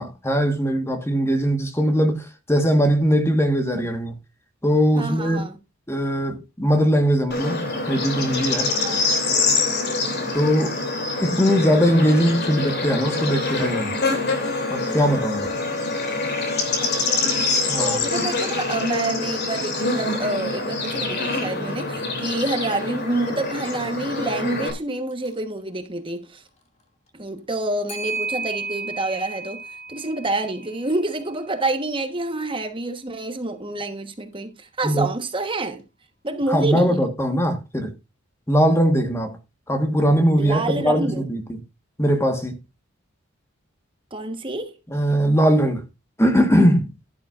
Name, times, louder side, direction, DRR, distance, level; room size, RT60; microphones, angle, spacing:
voice 1, 0.0-4.1 4.6-5.4 5.9-8.7 10.3-10.8 11.2-13.9 14.7-15.5 17.7-18.0 34.8-35.1 36.5-37.9 38.5-39.4 39.7-41.6 42.0-42.6 44.9-45.8 46.2-46.9, equal, 15° left, 1.4 m, -20 dB
voice 2, 4.9-5.6 8.7-9.1 9.7-10.0 14.7-15.1 16.8-17.2 17.8-26.4 27.2-29.6 29.9-35.8 36.2-37.0 40.4-41.2 44.1-44.8, right 2 dB, 25° right, 1.2 m, -28 dB
Bird / Insect, 7.3-24.7, left 3 dB, 55° left, 3.0 m, -25 dB
Clock, 21.7-21.8 22.2-22.3 25.1-25.3 27.9-32.1, right 3 dB, 35° left, 2.5 m, -34 dB
12.0 x 11.5 x 2.5 m
head